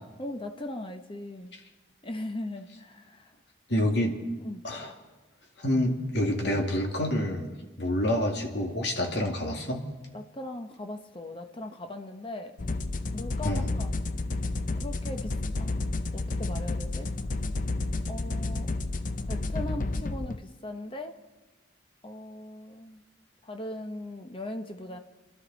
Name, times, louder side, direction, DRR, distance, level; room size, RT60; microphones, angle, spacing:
voice 1, 0.2-1.5 2.0-3.3 4.4-4.6 10.1-12.6 13.1-13.9 14.8-17.1 18.1-18.7 19.3-21.2 22.0-23.0 23.4-25.0, left 1 dB, 30° left, 6 dB, 1.0 m, -39 dB
voice 2, 3.7-4.2 4.6-4.9 5.6-7.5 7.8-9.8 13.4-13.7, left 1 dB, 60° left, 2 dB, 2.2 m, -27 dB
sound 1, 12.6-20.4, left 2 dB, 45° left, 0.6 m, -31 dB
26.5 x 13.0 x 4.1 m, 1.2 s
head